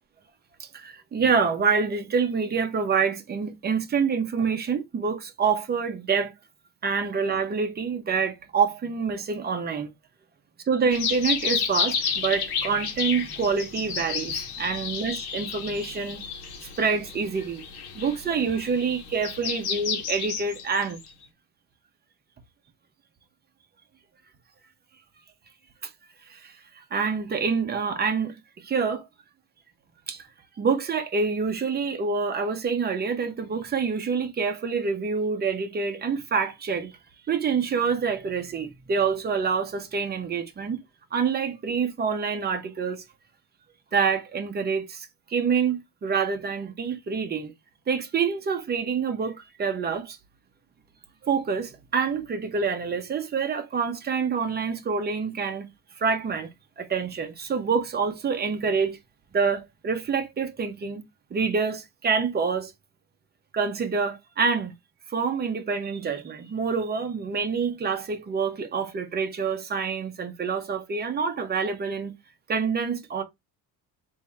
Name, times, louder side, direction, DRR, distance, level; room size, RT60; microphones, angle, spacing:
voice 1, 0.6-6.3 6.8-9.9 10.7-16.2 16.6-17.6 17.9-21.0 26.3-29.1 30.1-30.3 30.6-36.9 37.3-40.8 41.1-43.0 43.9-47.5 47.9-50.2 51.2-55.7 56.0-59.0 59.3-61.0 61.3-62.7 63.5-64.7 65.1-72.1 72.5-73.2, right 5 dB, 25° right, 0.7 m, -27 dB
sound 1, 10.9-21.1, left 6 dB, 65° left, 1.2 m, -31 dB
3.5 x 2.7 x 4.3 m
cardioid pair, 145°, 40 cm